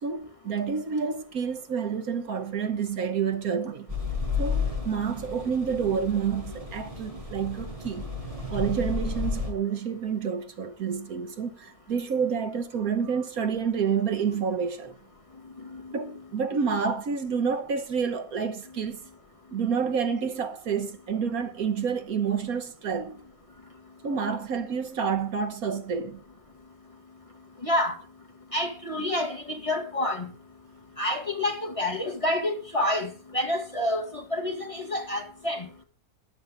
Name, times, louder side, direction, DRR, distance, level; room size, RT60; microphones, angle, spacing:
voice 1, 0.0-3.9 4.4-8.1 8.5-14.9 15.9-19.0 19.5-23.2 24.0-26.2, right 6 dB, 65° right, 1.4 m, -29 dB
sound 1, 3.9-9.5, left 4 dB, 20° right, 5.0 m, -32 dB
voice 2, 27.6-27.9 28.5-30.3 31.0-35.7, left 1 dB, 20° left, 1.9 m, -28 dB
13.0 x 11.0 x 3.9 m
omnidirectional pair, 1.7 m